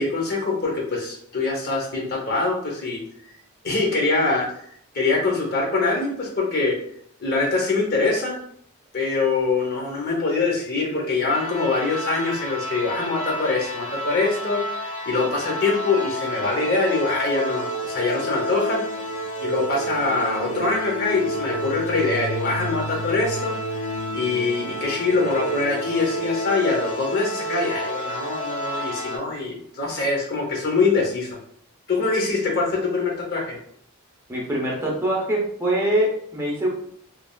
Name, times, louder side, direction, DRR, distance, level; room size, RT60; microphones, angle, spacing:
voice 1, 0.0-3.0 3.6-6.7 7.2-8.4 8.9-18.8 19.4-23.6 24.1-31.3 31.9-33.6, left 3 dB, 45° left, -1 dB, 0.7 m, -24 dB
sound 1, 11.3-29.2, equal, 80° left, 0.8 m, -30 dB
voice 2, 34.3-36.7, right 1 dB, 10° right, -3 dB, 0.6 m, -23 dB
3.1 x 2.3 x 2.2 m, 0.64 s
head